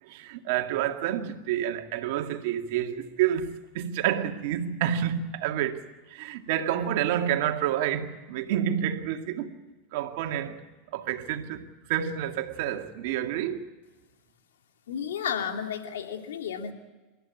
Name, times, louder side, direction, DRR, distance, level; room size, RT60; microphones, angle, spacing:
voice 1, 0.0-5.8 6.1-9.5 9.9-10.6 10.9-11.6 11.9-13.7, right 10 dB, 65° right, 2.1 m, -29 dB
voice 2, 14.9-16.7, left 8 dB, 80° left, 2.7 m, -32 dB
28.0 x 14.0 x 8.6 m
hypercardioid pair, 90°, 0 cm